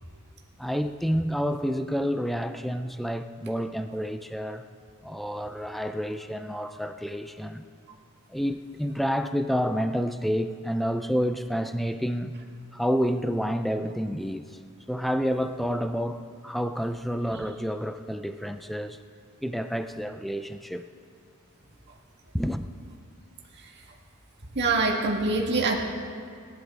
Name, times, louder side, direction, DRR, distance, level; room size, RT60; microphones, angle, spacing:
voice 1, 0.6-4.7 5.0-7.6 8.3-12.3 12.7-14.6 14.9-19.0 19.4-20.8 22.3-22.7, equal, ahead, 8 dB, 0.3 m, -29 dB
voice 2, 24.6-25.8, right 3 dB, 50° right, -1 dB, 1.8 m, -24 dB
18.5 x 11.5 x 3.7 m, 2.4 s
head